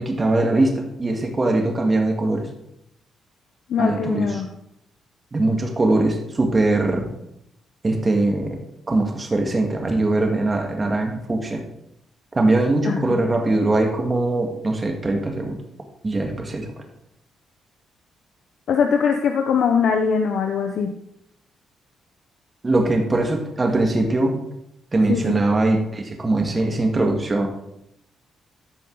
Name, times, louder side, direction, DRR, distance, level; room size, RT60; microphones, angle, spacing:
voice 1, 0.0-2.5 3.8-4.4 5.3-7.1 7.8-8.6 8.9-11.6 12.3-15.6 16.0-16.7 22.6-24.3 24.9-27.5, right 2 dB, 25° right, 3 dB, 1.8 m, -21 dB
voice 2, 3.7-4.5 12.8-13.2 18.7-20.9 25.1-25.3, left 6 dB, 70° left, 4 dB, 0.7 m, -21 dB
13.5 x 5.3 x 3.9 m, 0.79 s
cardioid pair, 90°, 0 cm